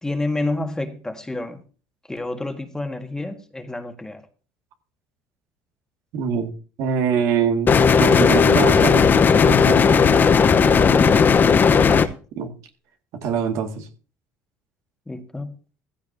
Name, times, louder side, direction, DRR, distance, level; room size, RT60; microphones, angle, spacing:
voice 1, 0.0-1.6 2.1-4.2 10.9-11.6 15.1-15.5, left 2 dB, 10° left, 1.7 m, -29 dB
voice 2, 6.1-6.5 6.8-9.2 9.4-10.1 12.3-12.5 13.2-13.9, right 7 dB, 70° right, 2.0 m, -24 dB
sound 1, 7.7-12.1, left 6 dB, 35° left, 0.9 m, -15 dB
15.5 x 13.0 x 2.7 m
supercardioid pair, 95°, 6 cm